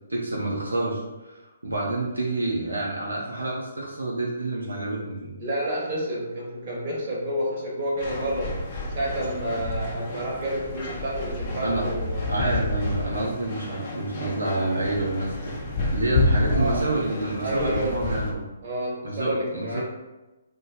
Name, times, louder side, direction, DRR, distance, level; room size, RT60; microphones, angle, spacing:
voice 1, 0.1-5.3 11.6-11.9 12.3-15.6 15.9-18.4 19.0-19.8, right 2 dB, 80° right, -4 dB, 0.7 m, -28 dB
voice 2, 5.4-8.6 8.9-12.4 16.5-16.8 17.1-18.1 18.6-19.8, right 1 dB, 40° right, -3 dB, 1.1 m, -30 dB
sound 1, 8.0-18.3, left 2 dB, 35° left, 0.7 m, -29 dB
3.0 x 2.1 x 4.1 m, 1.1 s
figure-of-eight pair, 130°, 0 cm